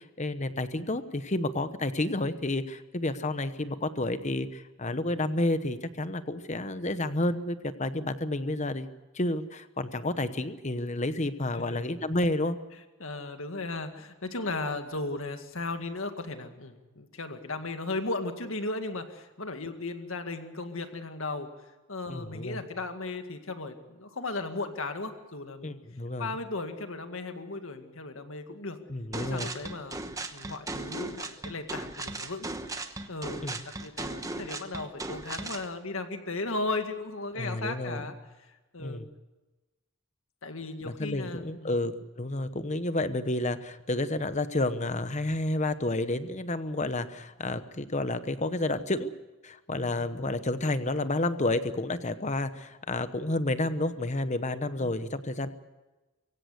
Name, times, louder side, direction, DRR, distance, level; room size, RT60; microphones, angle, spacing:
voice 1, 0.0-8.9 9.1-12.6 22.1-22.6 25.6-26.4 28.9-29.6 33.4-33.6 37.3-38.1 38.8-39.1 40.8-49.1 49.4-55.5, left 2 dB, 35° left, 12 dB, 1.0 m, -30 dB
voice 2, 13.0-21.5 21.9-25.8 26.2-28.8 29.2-30.0 30.3-32.5 33.1-33.5 33.8-38.2 38.7-39.0 40.4-41.7 54.8-55.0, left 2 dB, 65° left, 7 dB, 2.0 m, -36 dB
sound 1, 29.1-35.7, right 2 dB, 15° right, 1.1 m, -37 dB
23.5 x 16.5 x 8.1 m, 1.1 s
head